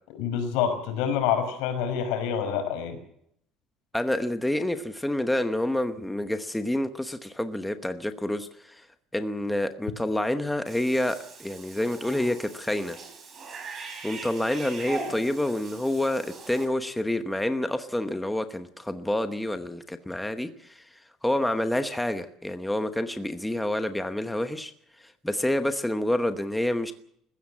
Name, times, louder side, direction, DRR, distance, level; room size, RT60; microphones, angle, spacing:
voice 1, 0.1-3.0, left 8 dB, 85° left, 8 dB, 5.3 m, -27 dB
voice 2, 3.9-8.8 9.1-13.0 14.0-20.8 21.2-24.7 25.0-26.9, left 1 dB, 5° left, 8 dB, 1.0 m, -28 dB
Cat / Bathtub (filling or washing), 10.7-16.7, right 4 dB, 25° right, 5.2 m, -41 dB
21.0 x 15.5 x 8.6 m, 0.70 s
cardioid pair, 165°, 0 cm